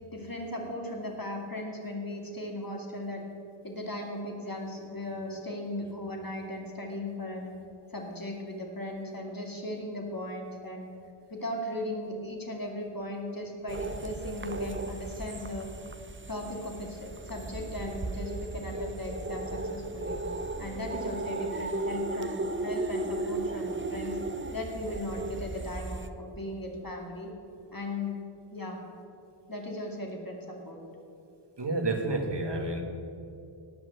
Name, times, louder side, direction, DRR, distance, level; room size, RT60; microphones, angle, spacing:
voice 1, 0.1-3.2 3.6-7.5 7.9-10.9 11.3-15.7 16.3-20.2 20.6-24.2 24.5-27.3 27.7-28.1 28.5-28.8 29.5-30.8, left 1 dB, 45° left, 0 dB, 2.5 m, -37 dB
sound 1, 13.7-26.1, right 2 dB, 25° right, 0.8 m, -35 dB
voice 2, 31.6-32.8, right 2 dB, 55° right, 3 dB, 1.9 m, -29 dB
17.0 x 6.0 x 8.2 m, 2.6 s
wide cardioid pair, 45°, 50 cm